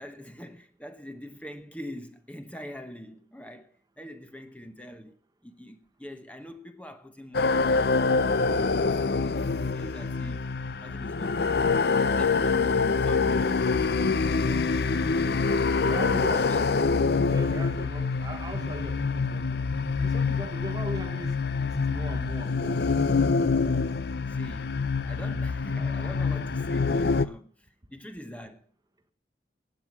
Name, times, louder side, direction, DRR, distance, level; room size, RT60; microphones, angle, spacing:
voice 1, 0.0-7.9 8.4-8.8 9.3-9.4 9.7-10.5 10.8-11.6 12.0-13.7 14.4-15.8 16.3-16.7 24.3-24.7 25.0-28.7, equal, 10° left, 1.0 m, -44 dB
sound 1, 7.3-27.3, left 4 dB, 65° left, 0.6 m, -25 dB
voice 2, 15.8-19.6 20.0-23.6, right 1 dB, 20° right, 1.1 m, -40 dB
15.5 x 8.9 x 6.0 m
head